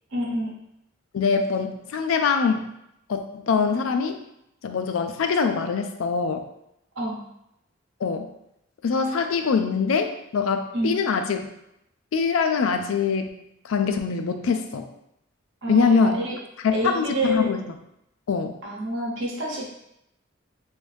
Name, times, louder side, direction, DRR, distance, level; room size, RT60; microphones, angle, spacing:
voice 1, 0.1-0.5 7.0-7.2 10.7-11.0 15.6-16.4 16.7-17.5 18.6-19.7, right 1 dB, 60° right, -3 dB, 0.9 m, -27 dB
voice 2, 1.1-2.7 3.1-4.2 4.6-6.4 8.0-8.3 8.8-11.4 12.1-13.3 13.6-14.8 15.7-16.2 16.6-17.6 18.3-18.6, left 5 dB, 75° left, 6 dB, 0.4 m, -23 dB
3.2 x 2.6 x 3.2 m, 0.81 s
head